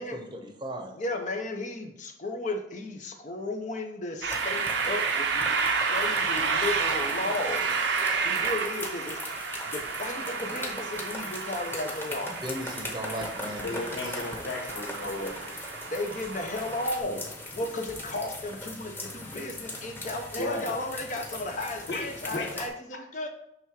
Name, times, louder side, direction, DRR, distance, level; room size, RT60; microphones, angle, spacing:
voice 1, 0.0-1.0 12.3-14.2 15.5-15.6, equal, 25° right, 3 dB, 0.8 m, -38 dB
voice 2, 1.0-7.7 8.2-9.2 9.6-12.3 15.9-17.3 17.5-23.3, left 2 dB, 40° left, 4 dB, 0.6 m, -34 dB
sound 1, 4.2-17.0, right 5 dB, 75° right, 0.7 m, -31 dB
sound 2, 4.3-22.7, left 1 dB, 10° left, 1.0 m, -40 dB
voice 3, 13.6-15.4 20.4-20.7 21.9-22.5, left 2 dB, 75° left, 0 dB, 1.5 m, -34 dB
6.0 x 3.4 x 4.7 m, 0.79 s
head